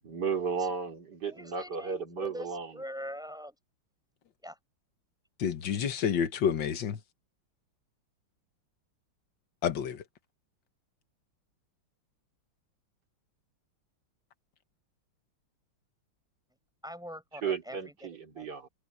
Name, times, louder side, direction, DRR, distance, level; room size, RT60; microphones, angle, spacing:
voice 1, 0.0-2.7 17.4-18.7, right 6 dB, 50° right, 3.5 m, -34 dB
voice 2, 1.2-3.5 4.4-4.6 16.8-18.5, equal, ahead, 6.4 m, -43 dB
voice 3, 5.4-7.0 9.6-10.0, left 8 dB, 65° left, 1.9 m, -29 dB
omnidirectional pair, 2.3 m